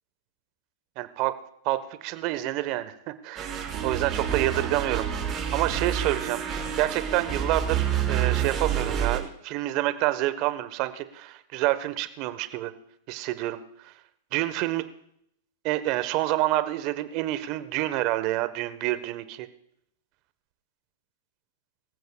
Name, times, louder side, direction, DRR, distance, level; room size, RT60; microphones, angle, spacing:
voice 1, 1.0-1.3 1.6-2.9 3.2-5.1 5.5-6.4 6.7-12.7 13.1-13.6 13.8-13.9 14.3-14.8 15.6-19.5, right 16 dB, 45° right, 12 dB, 1.2 m, -28 dB
sound 1, 3.4-9.2, right 8 dB, 25° right, 5.7 m, -28 dB
23.5 x 15.0 x 2.4 m, 0.72 s
hypercardioid pair, 105°, 0 cm